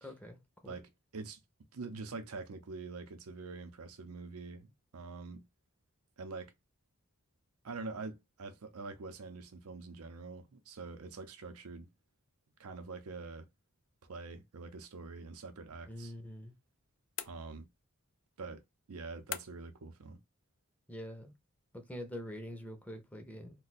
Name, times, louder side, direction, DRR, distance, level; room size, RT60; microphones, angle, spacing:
voice 1, 0.0-0.8 15.8-16.5 20.9-21.3 21.7-23.6, equal, 5° left, 0.6 m, -45 dB
voice 2, 0.7-1.4 1.7-5.4 6.2-6.5 7.6-11.9 12.6-13.5 14.0-16.1 17.2-17.7 18.4-18.6 18.9-20.2, right 4 dB, 75° right, 0.6 m, -45 dB
sound 1, 17.2-17.9 19.3-19.8, left 12 dB, 60° left, 0.3 m, -43 dB
2.6 x 2.2 x 4.0 m
head